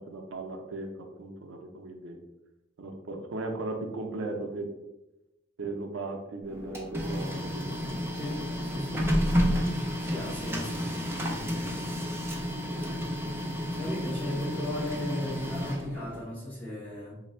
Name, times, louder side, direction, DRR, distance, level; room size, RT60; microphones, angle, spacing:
voice 1, 0.0-2.2 2.8-4.7 5.6-7.8 12.8-13.0, right 2 dB, 90° right, 4 dB, 0.5 m, -37 dB
Printer, 6.5-16.2, equal, 10° right, 0.5 m, -31 dB
voice 2, 8.1-9.5 10.0-11.9 13.7-17.2, left 1 dB, 10° left, -9 dB, 1.4 m, -37 dB
3.2 x 2.1 x 4.2 m, 0.94 s
head